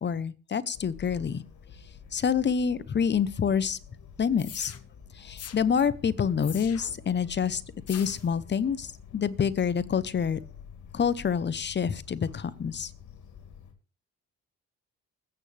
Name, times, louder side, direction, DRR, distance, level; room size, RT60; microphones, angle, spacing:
voice 1, 0.0-1.4 2.1-3.8 4.2-4.8 5.1-7.6 7.9-10.4 10.9-12.9, left 7 dB, 35° left, 17 dB, 0.8 m, -27 dB
sound 1, 0.7-13.7, left 7 dB, 80° left, 2.5 m, -49 dB
sound 2, 4.4-4.8 5.4-5.6 6.4-7.0 7.9-8.3, left 9 dB, 55° left, 1.1 m, -42 dB
20.5 x 8.8 x 3.3 m, 0.34 s
cardioid pair, 90°, 30 cm